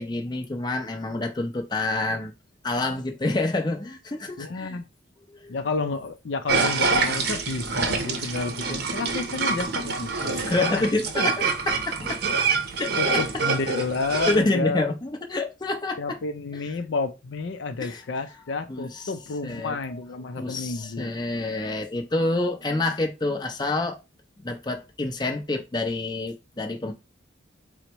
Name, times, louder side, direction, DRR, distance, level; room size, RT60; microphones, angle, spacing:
voice 1, 0.0-2.3 2.6-4.8 5.3-5.5 10.3-12.2 12.8-13.2 14.3-16.2 17.8-18.0 18.7-19.0 19.4-19.8 20.4-24.0 24.4-26.9, left 2 dB, 20° left, 0.5 m, -28 dB
voice 2, 4.4-4.9 5.5-10.9 13.0-14.9 16.0-21.1, left 3 dB, 70° left, 0.5 m, -30 dB
sound 1, 6.5-14.4, right 4 dB, 55° right, 0.7 m, -26 dB
3.9 x 2.1 x 4.4 m
head